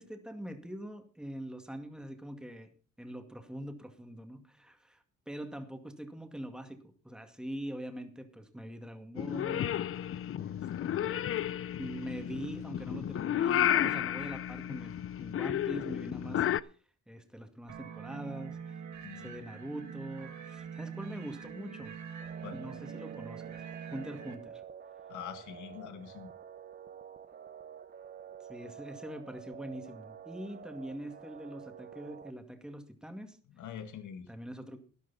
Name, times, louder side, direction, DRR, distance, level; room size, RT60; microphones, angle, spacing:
voice 1, 0.0-2.7 3.0-10.0 10.4-11.2 11.8-16.8 17.1-18.8 19.2-22.0 22.5-24.6 28.4-33.4 34.3-34.8, right 1 dB, ahead, 6 dB, 2.1 m, -43 dB
Purr / Meow, 9.2-16.6, left 10 dB, 45° left, 0.5 m, -32 dB
sound 1, 17.7-24.3, right 7 dB, 70° right, 2.0 m, -44 dB
voice 2, 19.0-19.4 22.4-22.6 25.1-26.3 33.6-34.3, left 8 dB, 75° left, 8 dB, 1.8 m, -44 dB
sound 2, 22.2-32.3, right 8 dB, 35° right, 0.8 m, -49 dB
13.0 x 11.0 x 4.2 m, 0.39 s
cardioid pair, 90°, 30 cm